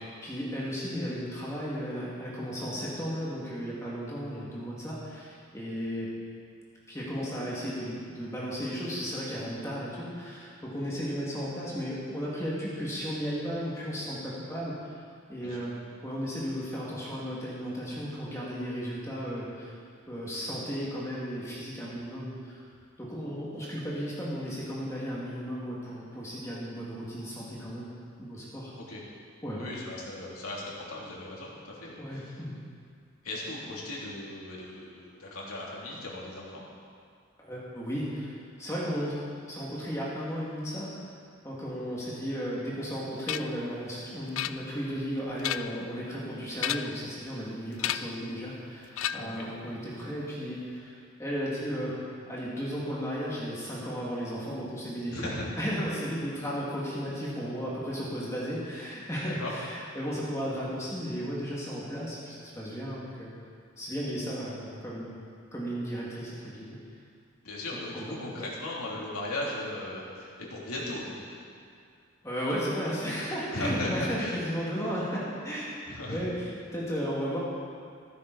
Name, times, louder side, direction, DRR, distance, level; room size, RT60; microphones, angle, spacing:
voice 1, 0.2-6.1 6.9-14.9 15.3-15.8 16.0-19.7 20.1-22.6 23.0-27.9 28.2-28.7 29.4-29.6 32.0-32.6 37.4-39.2 39.5-40.9 41.4-52.0 52.3-63.3 63.8-65.2 65.5-66.8 67.9-68.0 72.2-77.4, equal, 15° left, -7 dB, 2.2 m, -34 dB
voice 2, 29.6-32.4 33.2-36.7 49.2-49.5 55.1-55.5 59.2-59.5 67.4-71.4 73.5-74.4 75.9-76.2, left 1 dB, 85° left, -4 dB, 3.0 m, -37 dB
sound 1, 43.3-43.6 44.4-44.9 45.3-45.9 46.5-47.1 47.8-48.2 49.0-49.5, left 11 dB, 70° left, 0.4 m, -33 dB
15.0 x 13.0 x 4.1 m, 2.3 s
head